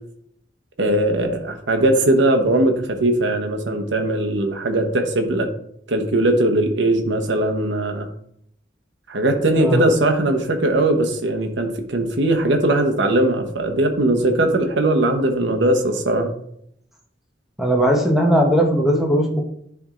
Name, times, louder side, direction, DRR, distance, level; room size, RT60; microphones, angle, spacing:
voice 1, 0.8-5.5 5.9-8.1 9.1-16.3, right 1 dB, 85° right, 4 dB, 1.0 m, -19 dB
voice 2, 9.5-9.9 17.6-19.4, equal, ahead, 0 dB, 1.0 m, -18 dB
10.5 x 3.5 x 3.8 m, 0.72 s
head